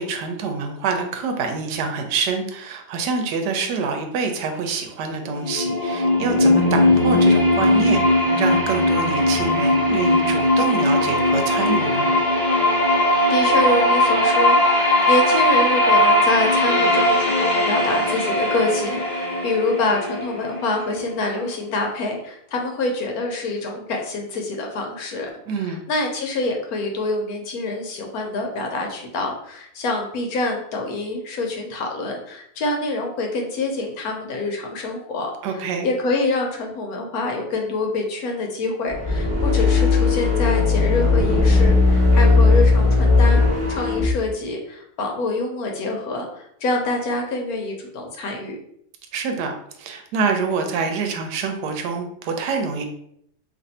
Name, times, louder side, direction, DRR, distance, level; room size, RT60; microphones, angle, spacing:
voice 1, 0.0-8.0 8.4-12.1 25.5-25.8 35.4-35.9 49.1-49.5 49.8-52.8, right 5 dB, 90° right, 4 dB, 1.2 m, -26 dB
sound 1, 5.3-21.2, left 1 dB, 35° left, 0.8 m, -19 dB
voice 2, 13.3-35.3 35.8-43.4 43.7-48.6, left 2 dB, 70° left, 2 dB, 1.1 m, -26 dB
sound 2, 38.9-44.1, left 3 dB, 10° right, 1.2 m, -17 dB
2.9 x 2.6 x 4.1 m, 0.70 s
omnidirectional pair, 1.7 m